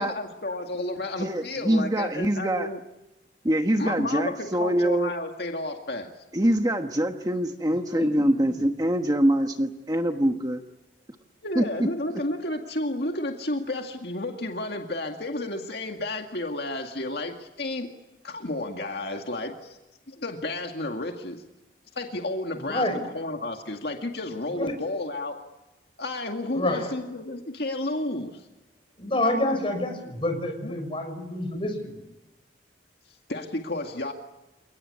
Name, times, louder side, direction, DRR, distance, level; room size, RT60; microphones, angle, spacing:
voice 1, 0.0-2.8 3.8-6.1 11.4-17.9 18.2-19.8 20.1-21.4 22.0-22.9 23.1-25.4 26.0-28.4 30.6-30.7 33.3-34.1, left 2 dB, 60° left, 3 dB, 2.1 m, -32 dB
voice 2, 1.2-2.7 3.4-5.1 6.3-10.6 11.5-11.9, right 1 dB, 20° right, 5 dB, 1.3 m, -24 dB
voice 3, 7.9-8.2 22.6-23.0 24.5-24.7 26.5-26.9 29.0-32.0, left 1 dB, 30° left, 6 dB, 6.1 m, -28 dB
29.5 x 18.5 x 9.7 m, 0.98 s
head